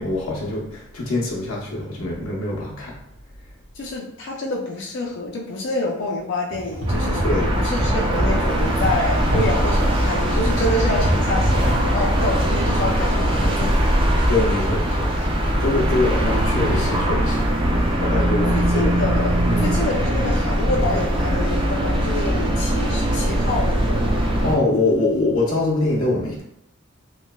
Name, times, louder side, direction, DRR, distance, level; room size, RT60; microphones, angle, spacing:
voice 1, 0.0-3.0 7.2-7.5 14.3-15.2 15.6-17.4 18.0-18.9 19.5-19.8 24.4-26.4, left 2 dB, 90° left, -3 dB, 0.8 m, -23 dB
voice 2, 3.8-13.7 18.5-24.5, left 2 dB, 55° left, -2 dB, 0.4 m, -27 dB
sound 1, 6.5-12.5, right 1 dB, 75° right, 0.7 m, -29 dB
sound 2, 6.9-24.6, right 1 dB, 25° right, 0.3 m, -21 dB
sound 3, 8.7-17.0, equal, 50° right, 1.1 m, -31 dB
3.1 x 2.0 x 2.2 m, 0.76 s
head